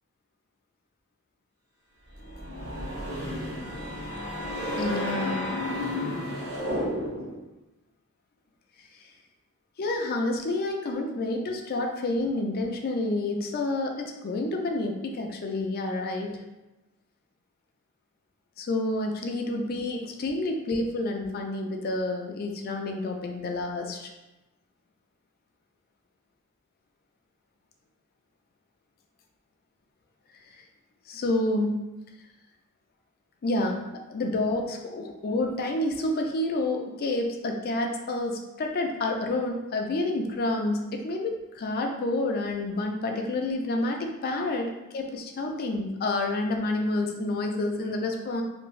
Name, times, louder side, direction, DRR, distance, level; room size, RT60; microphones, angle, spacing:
sound 1, 2.1-7.4, left 1 dB, 45° right, 1.0 m, -32 dB
voice 1, 4.8-5.5 9.8-16.4 18.6-24.1 31.1-31.7 33.4-33.8 34.1-48.4, left 2 dB, 45° left, 3 dB, 0.4 m, -29 dB
2.7 x 2.5 x 3.1 m, 1.0 s
head